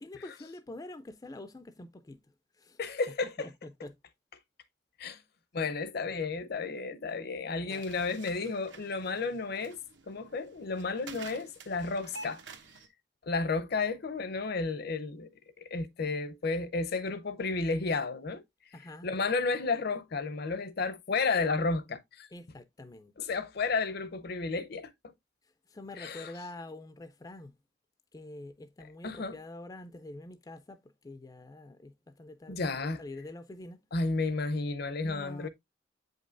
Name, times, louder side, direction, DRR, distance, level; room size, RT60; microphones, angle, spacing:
voice 1, 0.0-2.2 2.6-2.8 3.4-4.0 7.4-7.8 18.7-19.1 22.3-23.1 25.7-27.6 28.1-33.8 35.0-35.5, left 2 dB, 20° left, 0.4 m, -46 dB
voice 2, 2.8-3.5 5.0-5.2 5.5-9.8 10.1-12.4 13.3-15.3 15.6-18.4 19.0-22.3 23.2-24.9 26.0-26.3 29.0-29.4 32.5-33.0 33.9-35.5, left 3 dB, 60° left, 0.7 m, -32 dB
sound 1, 7.7-12.9, right 4 dB, 75° right, 1.0 m, -50 dB
7.6 x 5.2 x 2.5 m
head